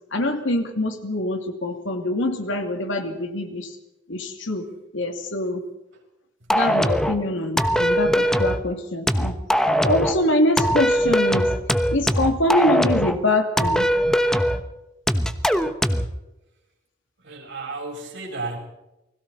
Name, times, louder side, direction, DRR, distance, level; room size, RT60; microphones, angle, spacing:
voice 1, 0.1-3.8 4.1-4.7 4.9-5.6 6.5-9.4 9.8-11.5 11.9-13.9, left 1 dB, 70° left, 5 dB, 2.6 m, -24 dB
sound 1, 6.5-7.2 7.6-8.6 9.1-10.2 10.6-13.2 13.6-14.6 15.1-16.1, equal, 5° left, 1.0 m, -21 dB
voice 2, 17.2-18.6, right 3 dB, 65° right, 0 dB, 7.1 m, -33 dB
29.5 x 21.0 x 4.2 m, 0.94 s
head